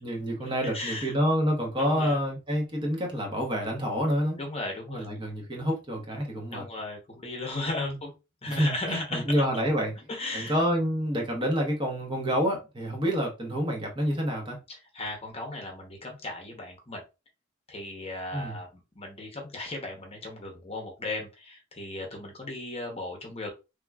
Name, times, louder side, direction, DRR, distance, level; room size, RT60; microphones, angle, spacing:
voice 1, 0.0-4.4 4.9-6.6 7.8-7.9 8.5-9.9 10.3-14.6 18.3-18.6, equal, 25° right, 0.9 m, -28 dB
voice 2, 0.7-1.1 1.8-2.2 4.4-5.1 6.5-8.1 8.4-9.2 10.1-10.5 14.9-17.0 17.7-18.7 19.0-23.5, left 2 dB, 30° left, 0.9 m, -36 dB
3.4 x 2.9 x 2.3 m
head